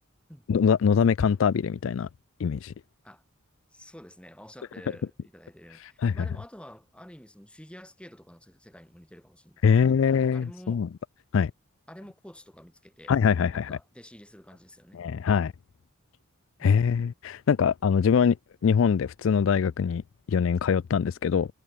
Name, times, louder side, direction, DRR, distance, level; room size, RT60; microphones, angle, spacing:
voice 1, 0.5-2.1 2.4-2.7 6.0-6.1 9.6-10.9 11.3-11.5 13.1-13.8 14.9-15.5 16.6-18.4 18.6-20.0 20.3-21.5, left 6 dB, 65° left, 0.3 m, -23 dB
voice 2, 3.7-9.9 10.3-10.8 11.9-13.2 13.5-15.0, equal, 5° left, 3.4 m, -49 dB
head